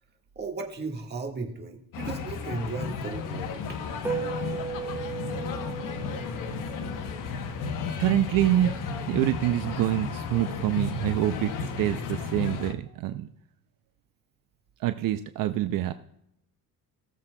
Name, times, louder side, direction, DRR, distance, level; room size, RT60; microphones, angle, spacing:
voice 1, 0.4-3.8 7.3-7.6, right 4 dB, 30° right, 1 dB, 1.7 m, -36 dB
sound 1, 1.9-12.7, left 5 dB, 60° left, 1.0 m, -33 dB
sound 2, 4.0-8.7, right 6 dB, 5° right, 2.4 m, -37 dB
voice 2, 8.0-8.8 9.1-13.3 14.8-15.9, right 13 dB, 70° right, 10 dB, 0.6 m, -26 dB
18.5 x 7.4 x 2.3 m, 0.78 s
cardioid pair, 130°, 35 cm